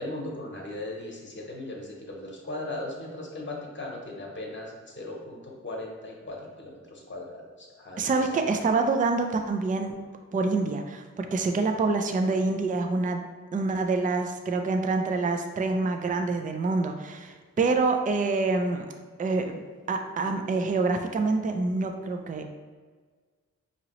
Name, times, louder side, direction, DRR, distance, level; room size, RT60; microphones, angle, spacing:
voice 1, 0.0-8.2, left 1 dB, 40° left, -1 dB, 1.0 m, -38 dB
voice 2, 8.0-10.0 10.3-13.3 13.5-18.8 19.2-19.6 19.9-22.5, right 3 dB, 30° right, 5 dB, 0.3 m, -26 dB
5.0 x 2.9 x 2.9 m, 1.5 s
wide cardioid pair, 100°, 29 cm